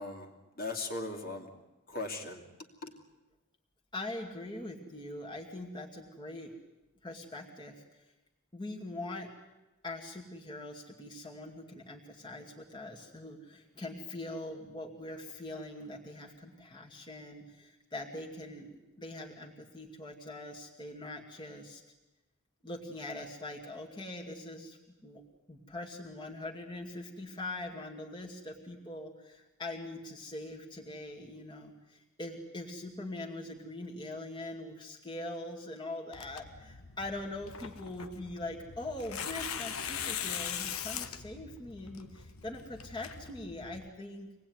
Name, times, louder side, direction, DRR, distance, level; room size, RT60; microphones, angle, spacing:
voice 1, 0.0-1.5 1.9-2.4 2.8-2.9, left 2 dB, 45° left, 2 dB, 2.8 m, -38 dB
voice 2, 3.9-6.5 7.0-8.1 8.5-9.3 9.8-21.8 22.6-25.2 25.5-44.3, left 2 dB, 20° left, -1 dB, 2.4 m, -42 dB
Tearing, 36.1-43.9, left 8 dB, 85° left, 1.3 m, -41 dB
25.5 x 19.0 x 9.6 m, 1.0 s
head